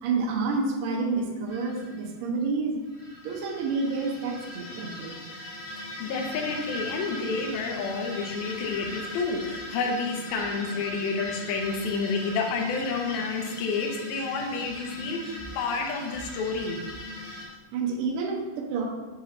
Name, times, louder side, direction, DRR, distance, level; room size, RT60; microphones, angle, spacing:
voice 1, 0.0-2.8 3.2-5.2 17.7-18.9, right 4 dB, 85° right, 0 dB, 1.9 m, -29 dB
sound 1, 1.5-1.9 2.8-17.5, left 1 dB, 55° left, 1.5 m, -39 dB
voice 2, 5.7-16.8, left 4 dB, 75° left, 2 dB, 2.3 m, -30 dB
7.5 x 2.8 x 5.0 m, 1.2 s
omnidirectional pair, 5.0 m